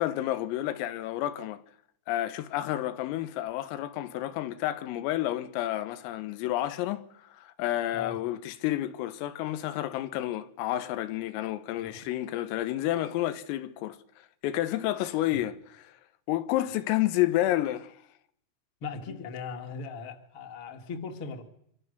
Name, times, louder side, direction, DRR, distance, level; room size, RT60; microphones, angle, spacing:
voice 1, 0.0-1.6 2.1-7.0 7.3-14.0 14.4-15.6 15.8-15.9 16.3-17.9, left 14 dB, 85° left, 3.8 m, -30 dB
voice 2, 18.8-21.4, left 5 dB, 40° left, 2.0 m, -38 dB
26.0 x 25.5 x 6.8 m
omnidirectional pair, 5.9 m